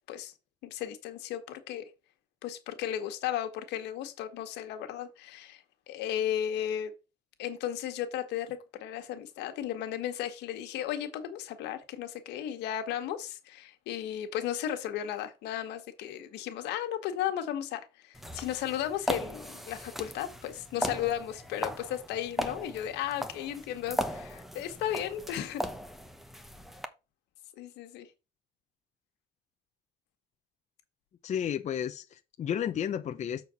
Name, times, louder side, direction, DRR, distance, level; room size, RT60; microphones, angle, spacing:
voice 1, 0.6-1.9 2.4-6.9 7.4-25.6 27.6-28.1, left 10 dB, 85° left, 1.5 m, -35 dB
sound 1, 18.1-26.9, equal, ahead, 0.9 m, -38 dB
voice 2, 31.2-33.4, left 9 dB, 45° left, 0.7 m, -32 dB
7.2 x 4.5 x 5.3 m
cardioid pair, 110°, 17 cm